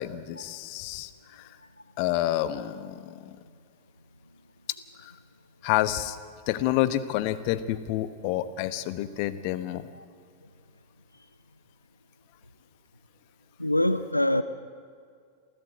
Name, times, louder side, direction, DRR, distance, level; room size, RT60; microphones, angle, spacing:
voice 1, 0.0-1.4 2.0-3.4 5.0-5.1 5.6-6.2 6.5-9.9, left 13 dB, 45° left, 13 dB, 1.2 m, -29 dB
voice 2, 13.6-14.4, left 1 dB, 85° left, 12 dB, 0.7 m, -24 dB
28.0 x 16.0 x 8.2 m, 2.2 s
figure-of-eight pair, 90°, 0 cm